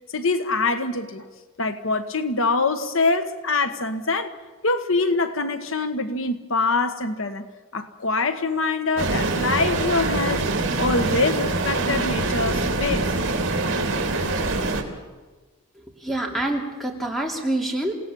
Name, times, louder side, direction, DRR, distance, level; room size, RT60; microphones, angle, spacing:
voice 1, 0.1-1.3 1.6-4.3 4.6-7.4 7.7-10.5 10.8-13.1, left 3 dB, 70° left, 9 dB, 1.3 m, -24 dB
sound 1, 9.0-14.8, right 2 dB, 60° right, 3.0 m, -24 dB
voice 2, 16.0-17.9, right 1 dB, ahead, 1 dB, 2.8 m, -26 dB
28.0 x 17.5 x 7.1 m, 1.3 s
head